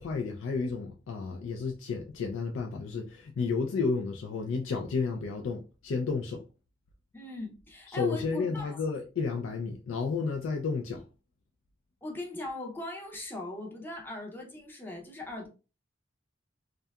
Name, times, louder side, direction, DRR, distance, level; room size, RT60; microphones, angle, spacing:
voice 1, 0.0-6.4 7.9-11.0, left 4 dB, 75° left, 0.3 m, -32 dB
voice 2, 7.1-8.8 12.0-15.5, left 2 dB, 10° left, 0.5 m, -39 dB
2.7 x 2.2 x 2.3 m
head